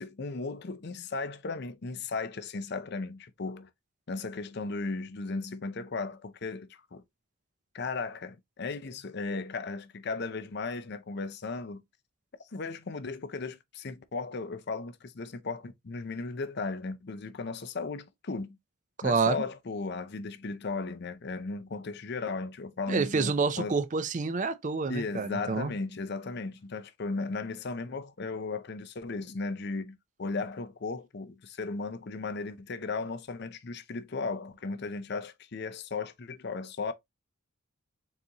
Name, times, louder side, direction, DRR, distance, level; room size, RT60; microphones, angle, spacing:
voice 1, 0.0-3.7 4.1-7.0 7.7-11.8 12.5-18.6 19.0-23.8 24.9-36.9, left 3 dB, 55° left, 0.6 m, -36 dB
voice 2, 19.0-19.4 22.9-25.7, right 4 dB, 40° right, 0.5 m, -28 dB
4.1 x 3.8 x 2.8 m
head